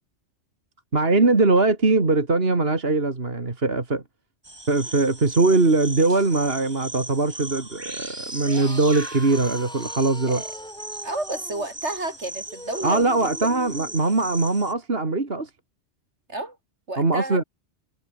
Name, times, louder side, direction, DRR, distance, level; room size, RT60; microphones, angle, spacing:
voice 1, 0.9-4.0 4.7-10.4 12.8-15.5 17.0-17.4, right 3 dB, 55° right, 2.9 m, -21 dB
sound 1, 4.4-14.7, right 2 dB, 20° right, 2.2 m, -38 dB
sound 2, 8.3-14.0, equal, 5° left, 3.6 m, -41 dB
voice 2, 11.0-13.1 14.0-14.1 16.3-16.6 16.9-17.4, right 2 dB, 75° right, 5.4 m, -31 dB
omnidirectional pair, 1.2 m